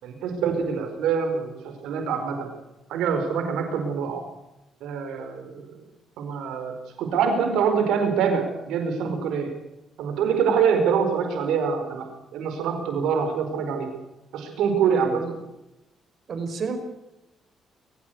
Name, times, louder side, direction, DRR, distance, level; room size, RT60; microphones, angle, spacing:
voice 1, 0.0-2.5 2.9-4.2 4.8-5.6 6.2-9.5 10.0-12.0 12.3-13.9 14.3-15.2, right 6 dB, 85° right, 5 dB, 4.8 m, -25 dB
voice 2, 16.3-16.8, right 5 dB, 55° right, 8 dB, 5.0 m, -30 dB
22.5 x 15.5 x 8.1 m, 0.92 s
cardioid pair, 90°, 0 cm